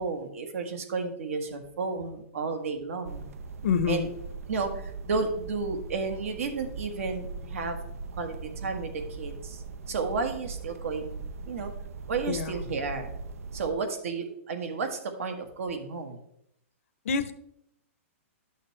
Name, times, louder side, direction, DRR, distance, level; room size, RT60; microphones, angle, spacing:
voice 1, 0.0-3.3 3.9-4.1 4.5-7.8 8.1-11.1 11.4-11.7 12.1-13.1 13.5-16.2, right 4 dB, 70° right, 6 dB, 1.6 m, -32 dB
sound 1, 3.0-13.7, right 4 dB, 90° right, 0.7 m, -40 dB
voice 2, 3.6-4.1 12.3-12.5 17.0-17.3, left 6 dB, 70° left, 11 dB, 0.7 m, -26 dB
11.5 x 6.5 x 3.2 m, 0.76 s
hypercardioid pair, 165°, 8 cm